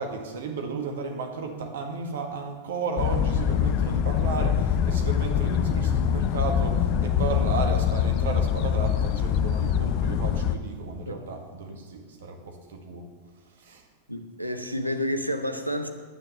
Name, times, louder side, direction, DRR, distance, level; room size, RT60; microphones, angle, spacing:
voice 1, 0.0-13.0 13.6-13.8, right 4 dB, 60° right, 3 dB, 1.7 m, -33 dB
sound 1, 3.0-10.6, left 8 dB, 40° left, 0.6 m, -24 dB
voice 2, 14.1-15.9, equal, 90° right, 6 dB, 1.0 m, -30 dB
9.9 x 8.7 x 7.2 m, 1.4 s
figure-of-eight pair, 90°, 0 cm